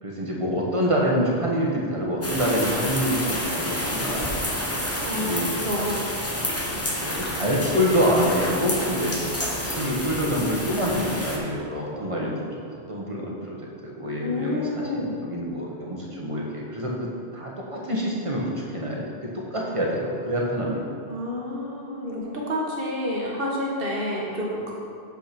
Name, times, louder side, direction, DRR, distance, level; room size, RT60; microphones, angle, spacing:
voice 1, 0.0-4.4 5.2-5.5 6.9-13.6 13.8-14.9 15.1-20.8, equal, 30° right, -3 dB, 1.3 m, -26 dB
sound 1, 2.2-11.4, left 1 dB, 15° left, 0.8 m, -29 dB
sound 2, 2.2-11.7, right 5 dB, 80° right, 1.1 m, -44 dB
Rain, 2.7-9.5, left 1 dB, 65° left, 2.3 m, -43 dB
voice 2, 5.0-6.0 14.2-15.2 21.1-24.7, left 1 dB, 55° right, -3 dB, 1.7 m, -29 dB
7.0 x 5.9 x 6.0 m, 2.4 s
omnidirectional pair, 1.2 m